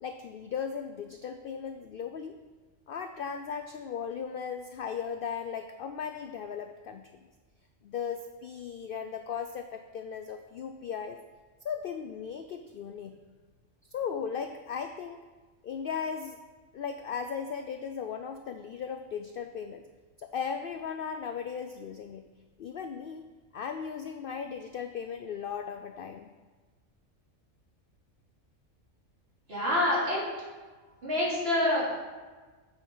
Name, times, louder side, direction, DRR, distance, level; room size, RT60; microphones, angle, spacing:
voice 1, 0.0-2.4 2.9-7.3 7.8-11.2 11.6-13.2 13.9-15.2 15.6-16.4 16.7-19.8 20.2-22.3 22.6-23.2 23.5-26.3, left 7 dB, 65° left, 8 dB, 0.5 m, -37 dB
voice 2, 29.5-30.3 31.0-31.9, left 1 dB, 50° right, -6 dB, 3.3 m, -26 dB
8.2 x 7.1 x 5.5 m, 1.3 s
omnidirectional pair, 1.4 m